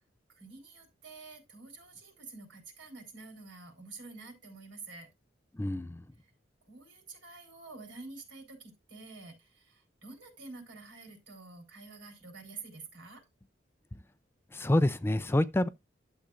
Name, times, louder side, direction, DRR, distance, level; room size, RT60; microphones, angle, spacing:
voice 1, 0.3-5.1 6.2-6.3 6.6-13.2, right 3 dB, 85° right, 3.8 m, -48 dB
voice 2, 5.5-6.0 14.5-15.7, left 1 dB, 15° left, 0.4 m, -27 dB
11.5 x 7.4 x 2.5 m
head